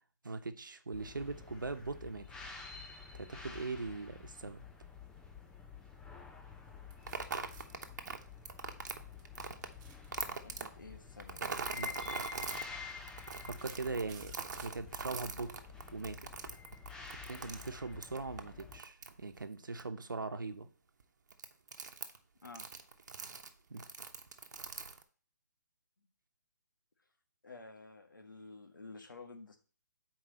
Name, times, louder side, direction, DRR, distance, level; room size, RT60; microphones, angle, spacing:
voice 1, 0.2-2.3 3.1-4.6 11.7-12.0 13.4-15.6 15.9-16.3 17.2-20.7 23.7-23.8, right 3 dB, 90° right, 9 dB, 1.0 m, -41 dB
sound 1, 0.9-18.8, left 6 dB, 5° left, 0.6 m, -49 dB
sound 2, 6.9-7.7 9.1-10.6 11.7-11.9 12.5-12.6 13.2-14.8, right 6 dB, 20° right, 1.2 m, -56 dB
sound 3, 7.1-9.7 10.1-10.7 11.2-12.6 13.1-19.4 19.8-19.9 21.0-21.1 21.3-22.2 22.4-23.5 23.8-25.0, right 5 dB, 65° right, 1.0 m, -42 dB
voice 2, 10.2-11.4 22.4-22.7 27.4-29.6, left 3 dB, 90° left, 5 dB, 1.6 m, -51 dB
7.7 x 4.7 x 4.2 m, 0.40 s
hypercardioid pair, 150°, 10 cm